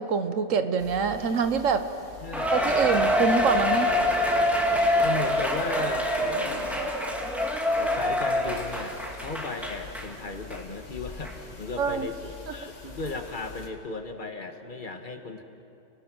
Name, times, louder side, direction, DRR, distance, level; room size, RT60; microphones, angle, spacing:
voice 1, 0.0-1.8 2.5-3.9 11.8-12.1, right 6 dB, 90° right, 9 dB, 1.4 m, -25 dB
sound 1, 0.8-13.7, left 4 dB, 75° left, 2.4 m, -45 dB
voice 2, 2.2-2.5 4.8-6.9 7.7-15.4, left 3 dB, 40° left, 6 dB, 1.6 m, -36 dB
Cheering, 2.3-10.1 10.5-10.6 11.2-11.3, left 1 dB, ahead, 1.9 m, -25 dB
29.5 x 18.0 x 6.2 m, 2.7 s
omnidirectional pair, 1.3 m